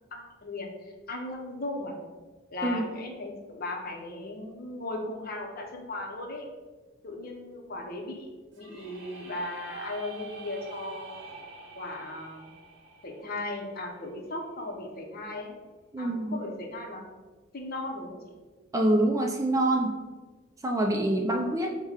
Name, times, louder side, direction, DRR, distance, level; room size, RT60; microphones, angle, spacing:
voice 1, 0.1-1.9 2.5-6.5 7.0-11.2 11.8-12.5 13.0-15.6 16.0-17.0 17.5-18.4, left 2 dB, 45° left, 2 dB, 0.7 m, -37 dB
sound 1, 8.5-14.4, right 4 dB, 55° right, 0.9 m, -47 dB
voice 2, 15.9-16.4 18.7-20.0 20.6-21.8, right 1 dB, 15° right, 1 dB, 0.3 m, -25 dB
4.8 x 2.2 x 4.8 m, 1.3 s
head